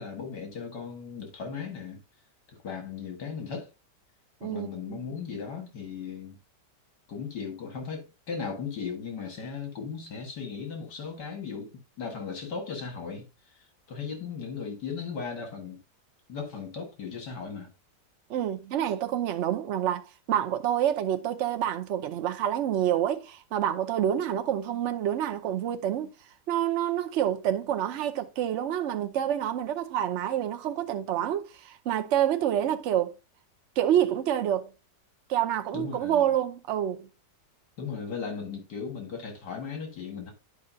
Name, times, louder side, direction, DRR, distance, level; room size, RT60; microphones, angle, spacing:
voice 1, 0.0-2.0 2.6-3.7 4.4-6.4 7.1-15.8 16.3-17.7 35.7-36.3 37.8-40.3, left 5 dB, 70° left, 2.2 m, -37 dB
voice 2, 4.4-5.0 18.3-26.1 26.5-33.1 33.8-34.7 35.3-37.1, right 10 dB, 60° right, 0.8 m, -27 dB
10.5 x 5.1 x 2.7 m
omnidirectional pair, 1.9 m